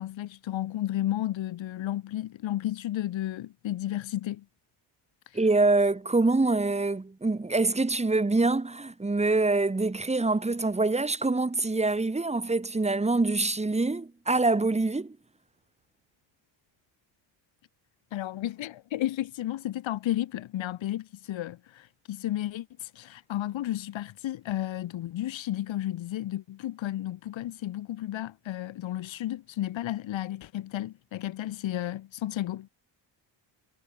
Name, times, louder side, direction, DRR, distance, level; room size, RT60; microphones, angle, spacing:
voice 1, 0.0-4.4 5.3-5.4 18.1-32.7, left 13 dB, 70° left, 5.9 m, -33 dB
voice 2, 5.3-15.2, right 3 dB, 15° right, 5.2 m, -25 dB
cardioid pair, 135°, 47 cm